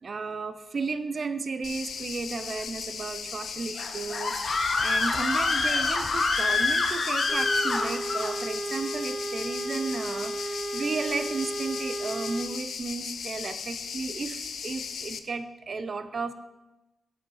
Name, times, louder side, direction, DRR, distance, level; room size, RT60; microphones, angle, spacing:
voice 1, 0.0-16.3, right 4 dB, 50° right, 11 dB, 0.6 m, -34 dB
sound 1, 1.6-15.2, left 6 dB, 75° left, 0.6 m, -37 dB
Screaming, 3.8-8.3, left 3 dB, 55° left, 1.2 m, -26 dB
sound 2, 7.3-12.4, right 2 dB, 5° right, 2.3 m, -34 dB
8.5 x 6.3 x 5.6 m, 1.0 s
cardioid pair, 85°, 0 cm